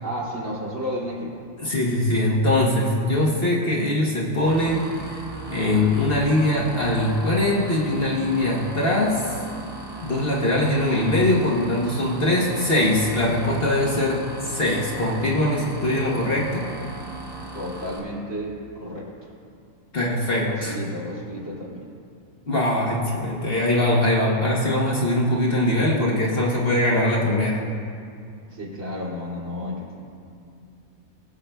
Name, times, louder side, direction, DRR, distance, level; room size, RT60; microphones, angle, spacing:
voice 1, 0.0-1.3 17.5-19.3 20.5-21.8 28.5-30.0, equal, 65° right, -5 dB, 2.7 m, -32 dB
voice 2, 1.6-4.9 5.5-9.3 10.0-14.2 14.4-16.7 19.9-20.8 22.5-27.6, left 1 dB, 45° left, -3 dB, 1.1 m, -22 dB
sound 1, 4.5-18.0, right 2 dB, 20° right, 0.8 m, -38 dB
20.0 x 7.2 x 2.2 m, 2.4 s
omnidirectional pair, 1.5 m